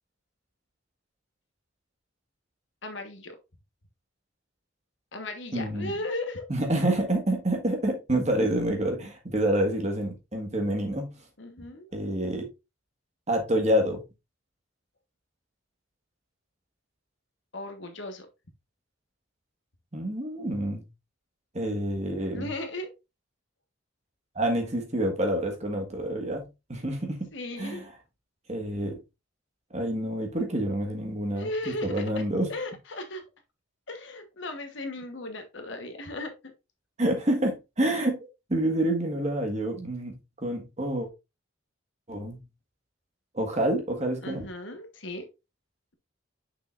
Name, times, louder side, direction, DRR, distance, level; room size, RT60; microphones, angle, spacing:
voice 1, 2.8-3.4 5.1-6.4 11.4-11.9 17.5-18.3 22.3-22.9 27.3-27.9 31.3-32.2 32.5-33.2 33.9-36.5 44.2-45.3, left 2 dB, 60° left, 6 dB, 1.2 m, -36 dB
voice 2, 5.5-5.9 6.5-11.1 11.9-12.4 13.3-14.0 19.9-20.8 21.5-22.5 24.3-27.3 27.6-27.8 28.5-29.0 29.7-32.5 37.0-41.1 42.1-42.4 43.3-44.4, right 1 dB, 35° right, 3 dB, 1.6 m, -28 dB
6.4 x 5.9 x 2.5 m, 0.25 s
head